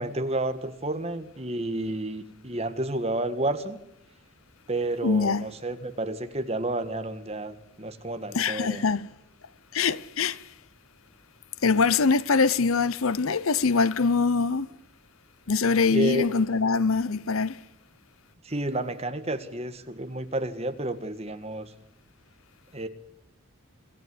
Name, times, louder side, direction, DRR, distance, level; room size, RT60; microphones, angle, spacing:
voice 1, 0.0-3.8 4.7-8.8 15.9-16.2 18.4-21.7 22.7-22.9, right 1 dB, 30° right, 1.8 m, -30 dB
voice 2, 5.0-5.4 8.3-9.1 9.7-10.5 11.6-14.7 15.5-17.6, left 4 dB, 80° left, 0.8 m, -23 dB
26.5 x 16.0 x 9.6 m
head